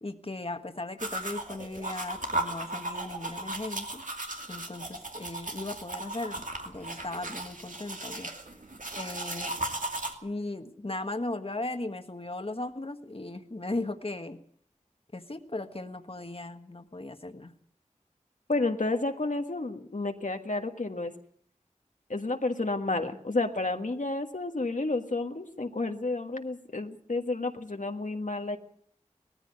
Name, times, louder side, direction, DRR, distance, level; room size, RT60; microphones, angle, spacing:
voice 1, 0.0-4.0 4.5-8.3 8.9-9.5 10.2-14.4 15.1-17.5, left 2 dB, 45° left, 6 dB, 1.5 m, -37 dB
sound 1, 1.0-10.1, right 2 dB, 80° right, 2.5 m, -36 dB
voice 2, 18.5-21.1 22.1-28.6, left 2 dB, 75° left, 4 dB, 1.6 m, -31 dB
19.0 x 14.5 x 9.5 m, 0.65 s
wide cardioid pair, 45°, 13 cm